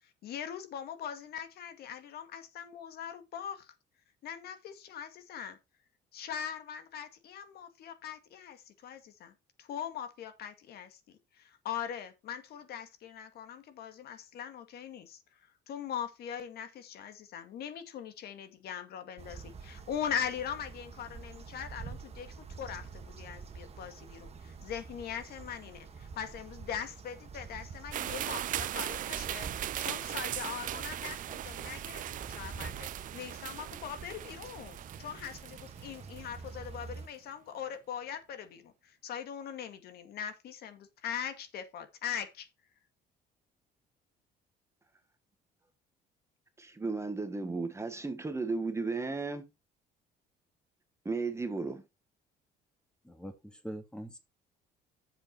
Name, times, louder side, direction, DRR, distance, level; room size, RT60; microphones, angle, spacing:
voice 1, 0.2-3.7 4.2-5.6 6.1-9.3 9.6-11.0 11.4-15.2 15.7-42.5, left 8 dB, 70° left, 2.1 m, -41 dB
sound 1, 19.2-37.1, right 5 dB, 35° right, 1.7 m, -47 dB
sound 2, 27.9-36.5, right 12 dB, 55° right, 0.5 m, -39 dB
voice 2, 46.6-49.5 51.0-51.8, right 3 dB, 15° right, 1.4 m, -34 dB
voice 3, 53.0-54.2, equal, 5° left, 2.2 m, -43 dB
8.6 x 7.4 x 4.2 m
cardioid pair, 110°, 17 cm